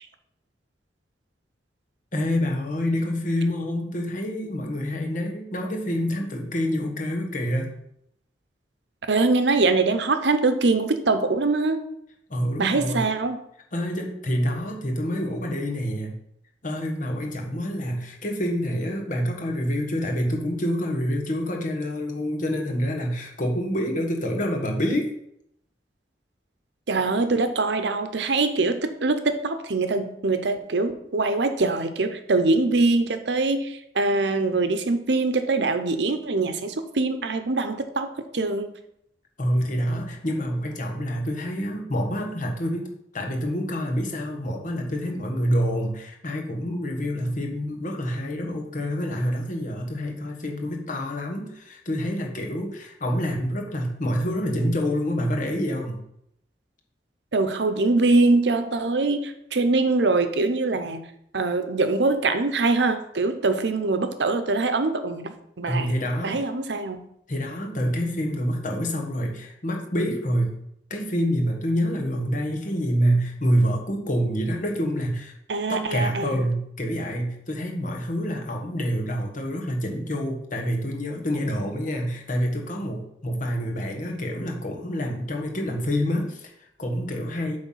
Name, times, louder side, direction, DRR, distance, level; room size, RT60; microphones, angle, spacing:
voice 1, 2.1-7.8 12.3-13.0 13.7-16.2 16.6-25.1 39.4-56.0 65.7-66.5 67.3-70.6 70.9-75.3 75.7-87.6, equal, 50° left, 2 dB, 1.4 m, -27 dB
voice 2, 9.1-11.8 12.6-13.4 26.9-38.7 57.3-61.0 61.3-65.9 66.2-67.0 75.5-76.4, right 3 dB, 80° right, 9 dB, 0.7 m, -23 dB
8.1 x 3.4 x 5.7 m, 0.75 s
head